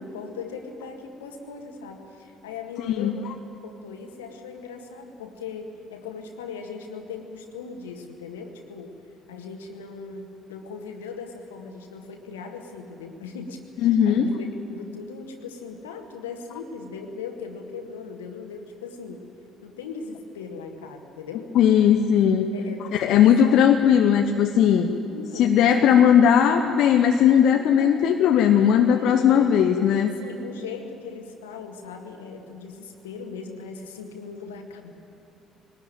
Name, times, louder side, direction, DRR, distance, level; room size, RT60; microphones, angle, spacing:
voice 1, 0.0-3.2 3.6-8.9 9.3-19.3 19.6-21.5 22.5-23.6 25.1-26.0 27.5-28.2 28.6-29.5 29.9-34.9, left 5 dB, 75° left, 4 dB, 1.9 m, -39 dB
voice 2, 13.8-14.3 21.5-22.5 22.9-24.9 25.3-30.1, left 8 dB, 55° left, 4 dB, 1.0 m, -18 dB
21.5 x 19.0 x 9.2 m, 2.7 s
figure-of-eight pair, 50°, 0 cm